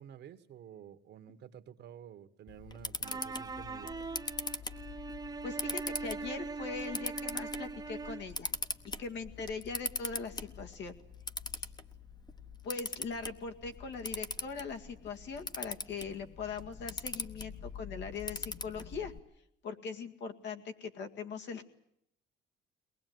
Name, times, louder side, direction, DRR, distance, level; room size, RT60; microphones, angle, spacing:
voice 1, 0.0-3.9, right 9 dB, 60° right, 9 dB, 1.5 m, -51 dB
Camera, 2.5-19.2, left 3 dB, 20° left, 1.1 m, -42 dB
sound 1, 3.0-8.4, right 4 dB, 20° right, 1.1 m, -41 dB
voice 2, 5.4-8.5 9.0-11.0 11.5-11.7 12.6-19.1 19.6-21.7, left 5 dB, 65° left, 5 dB, 2.1 m, -41 dB
22.5 x 19.5 x 9.4 m, 0.75 s
cardioid pair, 125°, 20 cm